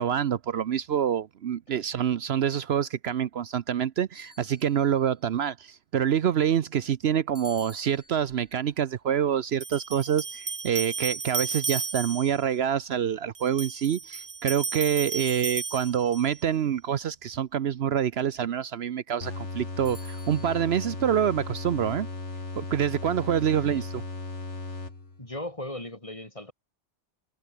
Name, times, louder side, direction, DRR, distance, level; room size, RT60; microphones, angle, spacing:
voice 1, 0.0-22.1 22.6-24.0, right 9 dB, 65° right, 1.0 m, -26 dB
sound 1, 4.1-5.1 7.3-8.6 11.5-12.6 15.1-16.1 19.8-20.6, left 1 dB, 60° left, 7.4 m, -50 dB
sound 2, 8.3-8.4 9.6-12.4 13.4-16.4, right 5 dB, 30° right, 0.6 m, -33 dB
sound 3, 19.2-25.3, left 3 dB, 85° left, 3.5 m, -36 dB
voice 2, 25.2-26.5, left 1 dB, 30° left, 3.9 m, -37 dB
omnidirectional pair, 1.2 m